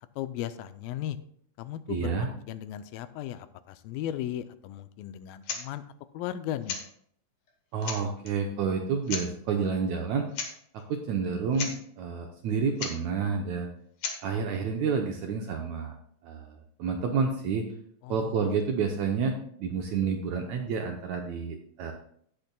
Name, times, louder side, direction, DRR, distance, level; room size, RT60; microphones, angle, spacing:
voice 1, 0.2-1.2 1.6-5.8 6.1-6.8 18.0-18.4, left 11 dB, 90° left, 12 dB, 2.4 m, -36 dB
voice 2, 1.9-2.3 7.7-10.3 10.9-13.7 14.2-16.0 16.2-17.7 18.1-21.9, right 5 dB, 75° right, 2 dB, 1.7 m, -29 dB
sound 1, 5.4-5.7 6.6-6.9 7.5-7.6 7.8-8.3 9.1-9.3 10.3-10.5 10.8-10.9 11.2-11.3 11.5-11.8 12.8-13.0 14.0-14.2, left 6 dB, 60° left, 2.0 m, -34 dB
17.5 x 6.7 x 2.3 m, 0.64 s
omnidirectional pair, 4.1 m